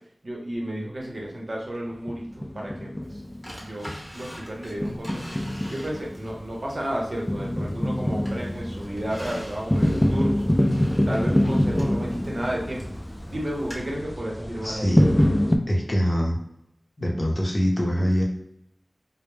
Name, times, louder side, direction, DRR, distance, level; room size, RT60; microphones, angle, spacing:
voice 1, 0.2-3.2 3.6-10.4 11.0-12.8 13.3-15.0, right 1 dB, 65° right, -3 dB, 0.7 m, -32 dB
sound 1, 2.1-3.5 3.9-4.0 4.8-15.6, equal, 20° left, 0.3 m, -25 dB
Drawer open or close, 3.4-6.3 6.8-7.9 8.3-13.0 13.7-13.8, equal, 15° right, 1.0 m, -42 dB
voice 2, 14.6-15.0 15.7-16.4 17.0-18.2, equal, 40° left, -1 dB, 0.7 m, -23 dB
2.1 x 2.0 x 3.1 m, 0.74 s
wide cardioid pair, 50°, 0 cm